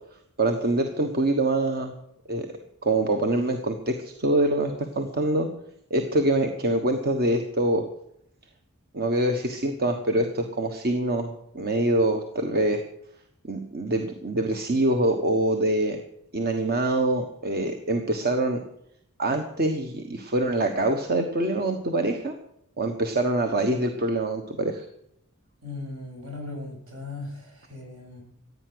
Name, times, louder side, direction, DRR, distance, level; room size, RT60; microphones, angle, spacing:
voice 1, 0.4-1.9 2.3-2.5 2.8-5.5 5.9-7.8 8.9-12.8 13.4-16.0 16.3-18.6 19.2-22.3 22.8-24.9, right 1 dB, 45° right, 6 dB, 1.3 m, -25 dB
voice 2, 25.6-28.2, left 3 dB, 65° right, 0 dB, 7.2 m, -38 dB
15.0 x 9.4 x 7.9 m, 0.74 s
head